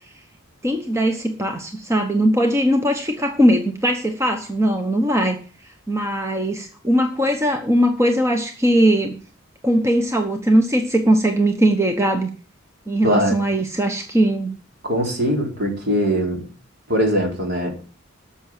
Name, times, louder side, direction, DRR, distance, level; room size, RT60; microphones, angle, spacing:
voice 1, 0.6-5.4 5.9-9.1 9.6-12.3 12.9-14.5, right 1 dB, 15° right, 4 dB, 1.1 m, -19 dB
voice 2, 13.0-13.4 14.8-16.4 16.9-17.7, equal, 50° right, 2 dB, 3.9 m, -21 dB
13.0 x 7.1 x 7.4 m, 0.39 s
head